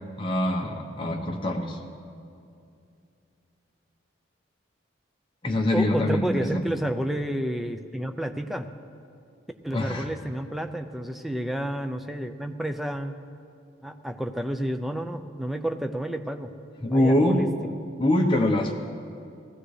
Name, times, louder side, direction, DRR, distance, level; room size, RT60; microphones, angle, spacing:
voice 1, 0.2-1.8 5.4-6.6 9.7-10.1 16.8-17.4 18.0-18.7, left 1 dB, 25° left, 0 dB, 0.9 m, -24 dB
voice 2, 5.7-8.7 9.6-13.1 13.8-16.5 16.9-17.5, right 1 dB, ahead, 6 dB, 0.4 m, -30 dB
19.5 x 15.0 x 3.3 m, 2.5 s
head